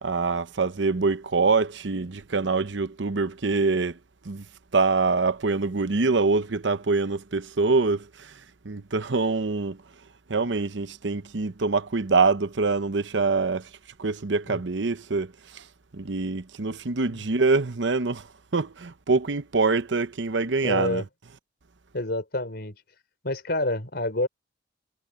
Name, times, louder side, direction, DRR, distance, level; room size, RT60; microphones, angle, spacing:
voice 1, 0.0-4.0 4.2-4.4 4.7-8.3 8.6-9.8 10.3-13.7 14.0-15.6 15.9-18.3 18.5-21.0, right 4 dB, 75° right, 0.9 m, -25 dB
voice 2, 20.6-21.0 21.9-22.8 23.2-24.3, left 2 dB, 60° left, 4.5 m, -28 dB
head